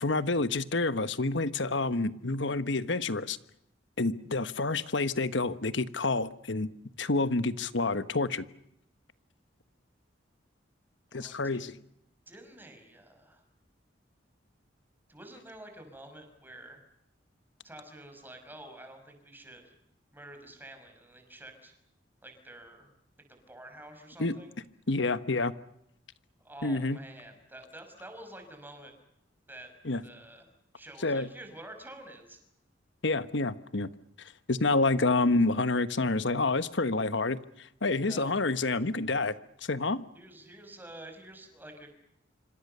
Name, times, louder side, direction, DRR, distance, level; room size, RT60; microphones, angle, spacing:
voice 1, 0.0-3.4 4.0-6.7 7.0-8.4 11.1-11.7 24.2-24.3 24.9-25.5 26.6-27.0 29.8-30.0 31.0-31.3 33.0-33.9 34.2-39.3 39.6-40.0, left 3 dB, 70° left, 13 dB, 1.2 m, -28 dB
voice 2, 11.1-11.7 12.3-13.4 15.1-16.8 17.6-19.7 20.1-21.7 22.2-22.9 23.3-24.6 26.4-28.9 29.5-29.7 30.0-30.5 30.7-32.4 37.9-38.4 40.1-41.9, right 1 dB, 10° right, 5 dB, 5.9 m, -49 dB
26.5 x 26.0 x 6.8 m, 0.77 s
head